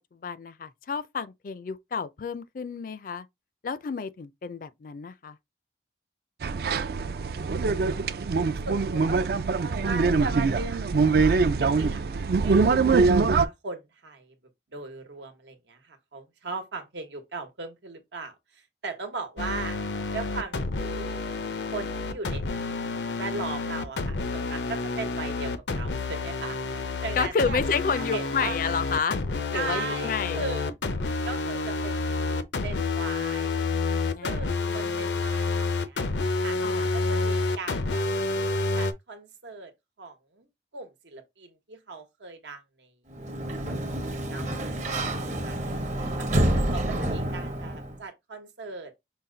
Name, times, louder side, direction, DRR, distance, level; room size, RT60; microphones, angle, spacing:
voice 1, 0.1-3.3 3.6-5.4 27.2-29.2 29.5-30.4 34.1-35.0 36.6-36.9, left 5 dB, 50° left, 0.4 m, -30 dB
sound 1, 6.4-13.5, right 4 dB, 60° right, 0.4 m, -23 dB
voice 2, 8.0-12.0 12.4-14.4 14.7-19.8 20.1-21.3 21.7-22.7 23.2-28.6 29.5-30.7 31.2-36.1 36.4-38.1 38.7-39.7 40.0-40.5 40.7-43.0 43.3-43.8 44.1-44.8 45.1-46.3 46.7-49.0, right 3 dB, 85° right, 1.1 m, -39 dB
sound 2, 19.4-38.9, left 3 dB, 90° left, 0.6 m, -29 dB
Sliding door, 43.1-48.0, right 1 dB, 45° right, 0.8 m, -28 dB
5.6 x 2.2 x 3.8 m
head